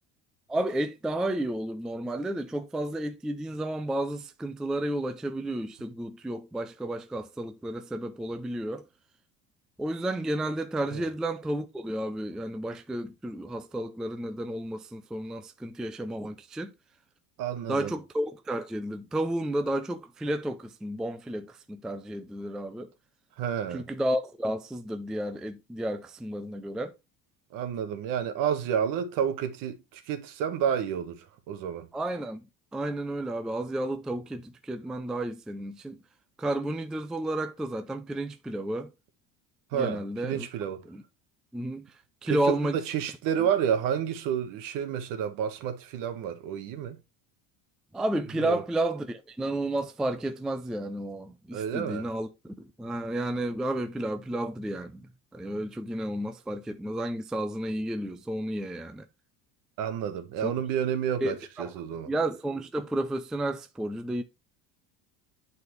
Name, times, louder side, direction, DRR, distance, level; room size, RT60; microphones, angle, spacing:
voice 1, 0.5-8.8 9.8-16.7 17.7-22.9 23.7-26.9 31.9-32.4 32.7-36.0 36.4-38.9 39.7-40.5 40.9-41.0 41.5-41.9 42.2-42.8 47.9-52.3 52.6-59.1 60.4-60.5 61.2-61.7 62.1-64.2, right 1 dB, ahead, 0.3 m, -32 dB
voice 2, 17.4-17.9 23.4-23.9 27.5-31.9 39.7-40.8 42.3-47.0 48.4-48.6 51.5-52.1 59.8-62.1, right 8 dB, 65° right, 1.4 m, -30 dB
9.5 x 4.2 x 3.1 m
cardioid pair, 155°, 35 cm